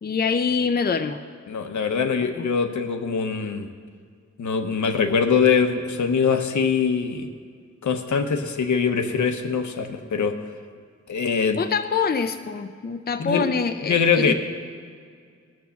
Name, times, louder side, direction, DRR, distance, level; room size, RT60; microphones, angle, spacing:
voice 1, 0.0-1.2 2.3-2.5 11.6-14.3, left 5 dB, 35° left, 8 dB, 0.6 m, -25 dB
voice 2, 1.5-3.7 4.4-7.3 7.8-10.4 11.1-11.6 13.2-13.5 13.8-14.3, left 6 dB, 75° left, 6 dB, 1.0 m, -23 dB
18.5 x 6.2 x 7.1 m, 2.1 s
wide cardioid pair, 100°, 29 cm